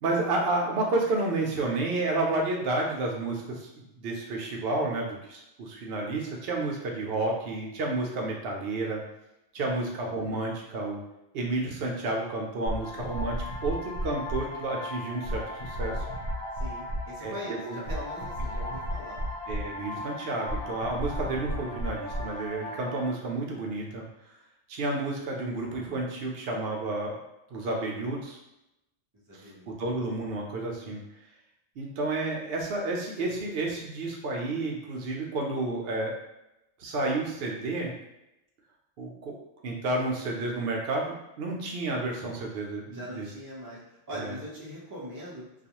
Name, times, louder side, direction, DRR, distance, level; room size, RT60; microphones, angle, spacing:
voice 1, 0.0-3.7 4.0-9.0 9.5-11.0 11.3-16.0 17.2-17.3 17.6-17.8 19.5-24.0 24.7-27.2 27.5-28.4 29.7-31.0 31.8-36.2 36.8-37.9 39.0-39.3 39.6-43.3 44.1-44.3, right 2 dB, 65° right, -1 dB, 0.7 m, -31 dB
sound 1, 12.7-23.1, left 1 dB, 55° left, 0.7 m, -34 dB
voice 2, 16.5-19.2 29.3-29.8 42.9-45.4, equal, 30° right, -6 dB, 0.3 m, -41 dB
2.4 x 2.3 x 2.8 m, 0.90 s
omnidirectional pair, 1.3 m